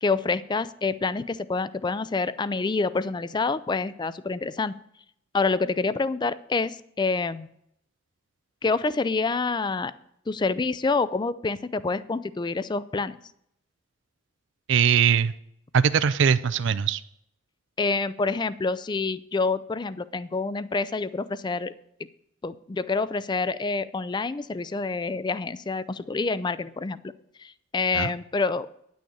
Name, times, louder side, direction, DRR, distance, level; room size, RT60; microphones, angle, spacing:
voice 1, 0.0-4.7 5.3-7.5 8.6-9.9 10.3-13.2 17.8-21.7 22.4-27.1 27.4-28.7, left 4 dB, 20° left, 16 dB, 0.3 m, -27 dB
voice 2, 14.7-15.3 15.7-17.0 27.9-28.1, right 7 dB, 60° right, 15 dB, 0.4 m, -21 dB
10.0 x 6.3 x 7.0 m, 0.73 s
head